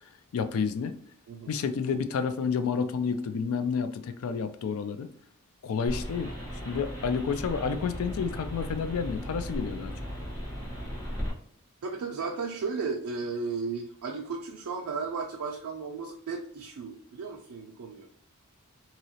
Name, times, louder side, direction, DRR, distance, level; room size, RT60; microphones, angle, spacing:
voice 1, 0.3-1.0 1.5-5.1 5.6-6.3 6.7-9.9, left 6 dB, 70° left, 10 dB, 0.3 m, -30 dB
voice 2, 1.3-1.6 11.8-18.1, right 4 dB, 85° right, 1 dB, 0.4 m, -35 dB
sound 1, 5.9-11.3, equal, 15° left, 1.2 m, -36 dB
3.0 x 2.7 x 2.8 m, 0.65 s
head